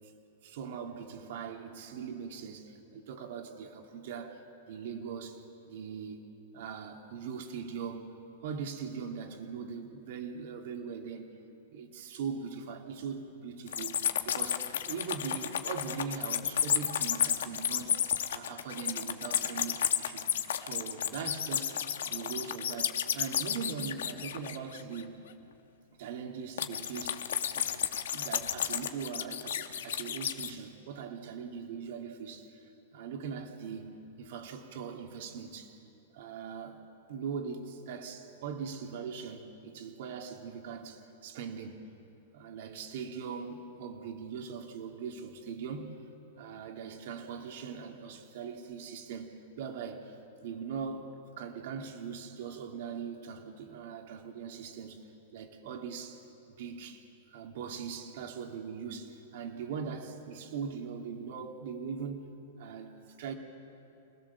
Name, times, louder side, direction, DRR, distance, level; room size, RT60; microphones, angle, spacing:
voice 1, 0.4-4.4 4.7-5.4 5.6-6.3 6.5-11.3 11.7-14.0 14.2-18.0 18.3-20.3 20.6-21.8 22.0-25.2 26.0-27.3 27.5-32.6 32.9-35.8 36.1-36.8 37.1-41.8 42.3-46.0 46.4-50.2 50.4-55.1 55.3-56.2 56.6-57.0 57.3-62.3 62.6-63.3, right 6 dB, 55° right, 3 dB, 2.6 m, -41 dB
sound 1, 13.7-25.0 26.6-30.5, left 9 dB, 85° left, 1.3 m, -32 dB
28.0 x 20.0 x 7.1 m, 2.7 s
supercardioid pair, 160°, 0 cm